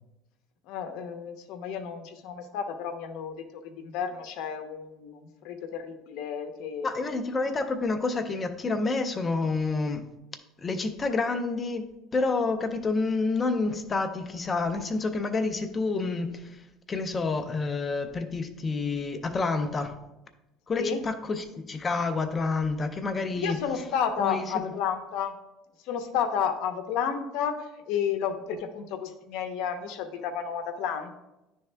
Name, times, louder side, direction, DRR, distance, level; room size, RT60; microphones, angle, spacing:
voice 1, 0.7-6.9 20.7-21.0 23.4-25.3 25.9-27.5 27.9-31.1, left 7 dB, 60° left, 7 dB, 0.7 m, -31 dB
voice 2, 6.8-10.0 10.6-11.9 12.1-20.0 20.7-23.6 24.2-24.7, left 3 dB, 15° left, 8 dB, 0.4 m, -29 dB
10.5 x 3.5 x 3.3 m, 0.96 s
cardioid pair, 175°, 0 cm